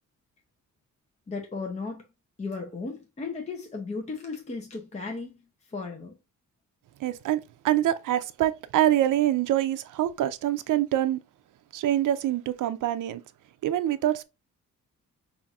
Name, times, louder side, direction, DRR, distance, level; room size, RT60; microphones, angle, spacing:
voice 1, 1.3-2.1 2.4-5.4 5.6-6.2, left 4 dB, 20° left, 0.6 m, -35 dB
voice 2, 7.0-11.2 11.7-13.2 13.6-14.2, right 12 dB, 75° right, 0.5 m, -25 dB
5.5 x 2.5 x 2.3 m
wide cardioid pair, 180°, 32 cm